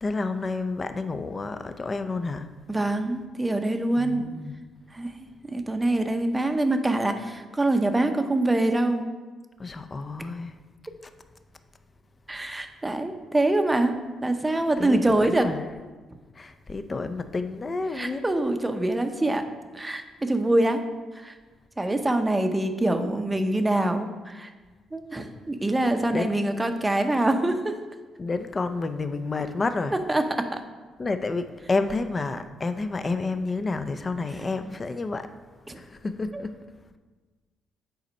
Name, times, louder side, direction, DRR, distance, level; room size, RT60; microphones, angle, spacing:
voice 1, 0.0-2.5 4.0-4.6 9.6-10.5 14.8-15.6 16.4-18.2 26.1-26.3 28.2-30.0 31.0-35.3 35.7-36.8, left 3 dB, 30° left, 9 dB, 0.5 m, -30 dB
voice 2, 2.7-4.3 4.9-5.1 5.5-9.1 12.3-13.9 14.2-15.5 17.9-19.4 19.7-20.9 21.2-21.3 21.8-24.5 24.9-27.8 30.1-30.6 35.7-35.8 36.3-36.4, right 1 dB, 15° right, 7 dB, 0.7 m, -25 dB
8.1 x 4.2 x 5.1 m, 1.3 s
cardioid pair, 90°, 0 cm